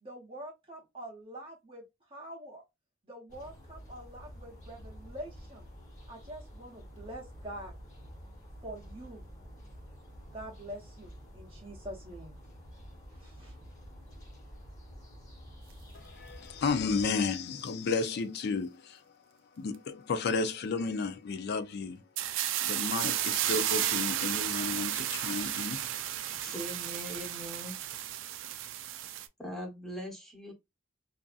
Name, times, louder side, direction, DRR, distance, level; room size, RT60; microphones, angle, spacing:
voice 1, 0.0-1.8 2.1-2.6 3.0-5.6 6.1-7.8 8.6-9.3 10.3-12.4 13.1-13.5, right 1 dB, 25° right, 0.8 m, -45 dB
sound 1, 3.3-17.1, equal, 40° left, 1.3 m, -49 dB
voice 2, 15.9-19.0 19.6-22.0 22.3-25.8, left 4 dB, 55° left, 0.4 m, -33 dB
sound 2, 22.2-29.3, right 12 dB, 70° right, 0.3 m, -33 dB
voice 3, 26.3-27.8 29.4-30.5, equal, ahead, 0.8 m, -41 dB
2.6 x 2.4 x 2.3 m
head